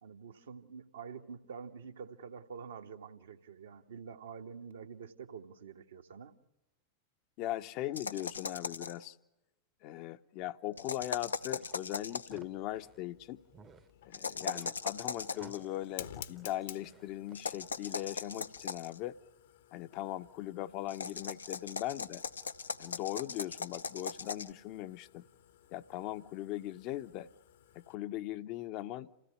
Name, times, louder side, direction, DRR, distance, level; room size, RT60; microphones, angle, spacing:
voice 1, 0.0-6.3, right 6 dB, 65° right, 4 dB, 1.5 m, -47 dB
voice 2, 7.4-9.2 9.8-13.4 14.0-19.2 19.7-22.2 22.8-25.3 25.7-27.3 27.7-29.1, left 14 dB, 40° left, 10 dB, 0.9 m, -39 dB
sound 1, 8.0-9.0 10.8-12.4 14.1-15.6 17.3-19.0 20.9-24.5, left 5 dB, 75° left, 0.8 m, -39 dB
sound 2, 11.6-13.1 13.5-13.9 14.2-17.4, right 6 dB, 25° right, 1.0 m, -57 dB
Fire, 12.2-28.0, left 10 dB, 60° left, 1.2 m, -55 dB
28.0 x 17.0 x 8.4 m, 1.0 s
figure-of-eight pair, 90°, 0 cm